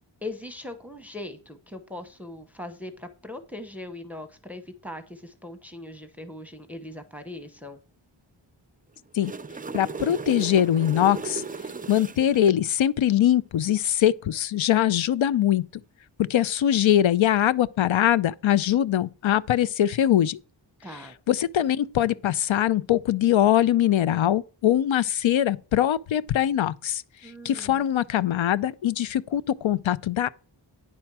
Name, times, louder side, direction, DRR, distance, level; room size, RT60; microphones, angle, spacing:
voice 1, 0.2-7.8 20.8-21.1 27.2-27.8, left 1 dB, 5° right, 0.9 m, -40 dB
sound 1, 9.0-12.6 16.4-16.6, right 4 dB, 20° right, 0.4 m, -35 dB
voice 2, 9.7-11.4 11.9-15.6 16.3-20.4 21.3-27.0 27.4-30.3, left 11 dB, 80° left, 0.6 m, -22 dB
9.7 x 4.4 x 6.0 m
wide cardioid pair, 80°, 47 cm